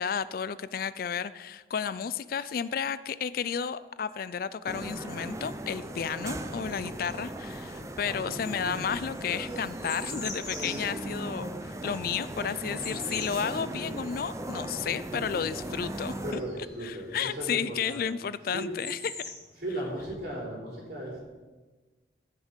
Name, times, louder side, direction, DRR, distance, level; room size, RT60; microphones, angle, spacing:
voice 1, 0.0-16.4 16.8-19.2, left 7 dB, 55° left, 16 dB, 0.4 m, -32 dB
sound 1, 4.7-16.3, right 1 dB, 15° right, 0.6 m, -37 dB
sound 2, 6.2-7.4 7.7-17.0 18.0-18.1 18.3-19.9, left 3 dB, 20° left, 3.2 m, -43 dB
voice 2, 8.0-8.8 12.9-13.1 16.2-18.0 18.5-18.7 19.6-21.2, right 1 dB, 65° right, -3 dB, 4.2 m, -37 dB
15.5 x 6.4 x 5.2 m, 1.3 s
head